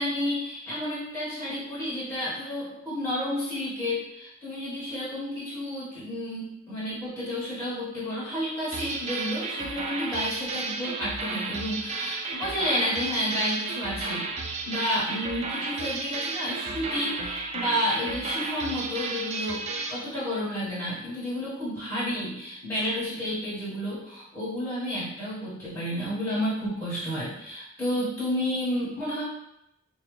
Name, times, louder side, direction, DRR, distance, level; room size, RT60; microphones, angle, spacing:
voice 1, 0.0-19.6 19.9-29.2, equal, 10° left, -11 dB, 1.4 m, -31 dB
sound 1, 8.7-20.0, right 3 dB, 30° right, 0.3 m, -33 dB
3.7 x 2.7 x 3.2 m, 0.81 s
head